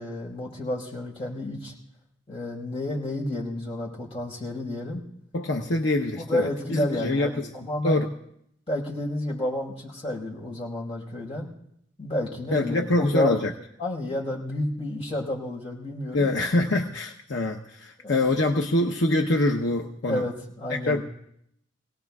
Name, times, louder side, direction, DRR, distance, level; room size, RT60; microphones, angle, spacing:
voice 1, 0.0-1.7 2.3-5.0 6.2-8.1 8.7-11.5 12.0-13.4 13.8-16.3 18.0-18.3 20.0-21.0, left 1 dB, 30° left, -3 dB, 4.5 m, -30 dB
voice 2, 5.3-7.5 7.8-8.1 12.5-13.5 16.1-20.3 20.7-21.0, left 2 dB, 70° left, 2 dB, 0.9 m, -25 dB
26.5 x 18.0 x 2.4 m, 0.73 s
head